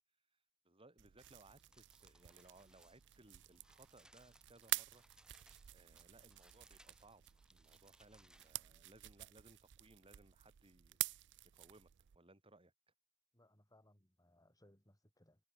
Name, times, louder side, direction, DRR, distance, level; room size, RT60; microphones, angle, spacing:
voice 1, 0.6-5.0 5.7-7.2 7.5-11.2 11.5-12.7, right 2 dB, 25° right, 4.6 m, -65 dB
sound 1, 1.0-12.2, right 18 dB, 55° right, 0.4 m, -48 dB
sound 2, 1.2-8.5, right 1 dB, 5° right, 6.8 m, -69 dB
voice 2, 13.3-15.4, left 1 dB, 15° left, 7.9 m, -69 dB
head